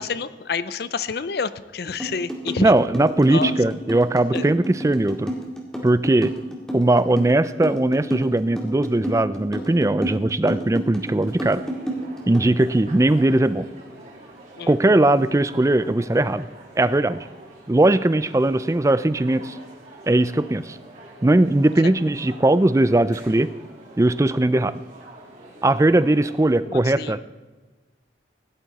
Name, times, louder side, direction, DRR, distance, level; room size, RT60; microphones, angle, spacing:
voice 1, 0.0-2.7 3.3-3.5 4.3-4.5 14.6-14.7 21.8-21.9 26.7-27.2, left 5 dB, 55° left, 15 dB, 0.5 m, -28 dB
sound 1, 2.0-12.5, right 1 dB, 5° left, 2.2 m, -30 dB
voice 2, 2.6-5.3 5.8-6.3 6.7-11.6 12.3-13.7 14.7-16.5 16.8-17.2 17.7-19.6 20.1-20.8 21.2-23.5 24.0-24.8 25.6-27.2, right 2 dB, 15° right, 15 dB, 0.4 m, -19 dB
sound 2, 11.2-26.6, right 1 dB, 40° right, 2.9 m, -45 dB
16.5 x 11.5 x 4.2 m, 1.3 s
head